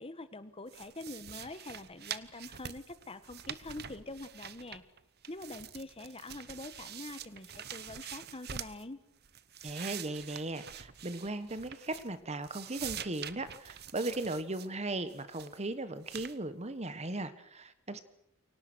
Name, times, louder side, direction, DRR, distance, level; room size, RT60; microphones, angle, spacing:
voice 1, 0.0-4.8 5.3-9.0, left 2 dB, 25° left, 12 dB, 1.4 m, -45 dB
sound 1, 0.7-5.0 5.2-8.8 9.2-12.2 12.4-14.7 15.1-15.6 16.0-16.4, right 9 dB, 45° right, 1.0 m, -45 dB
voice 2, 9.6-18.0, right 2 dB, 30° right, 12 dB, 1.4 m, -37 dB
29.0 x 24.0 x 6.3 m, 0.75 s
head